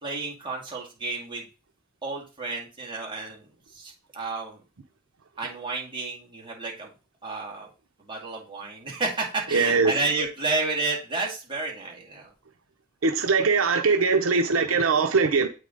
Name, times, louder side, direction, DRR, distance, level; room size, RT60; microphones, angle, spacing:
voice 1, 0.0-1.5 2.0-4.6 5.4-6.9 7.2-7.7 8.1-12.3, right 3 dB, 25° right, 2.4 m, -31 dB
voice 2, 9.5-9.9 13.0-15.5, right 4 dB, 80° right, 0.7 m, -21 dB
8.2 x 4.8 x 3.9 m
head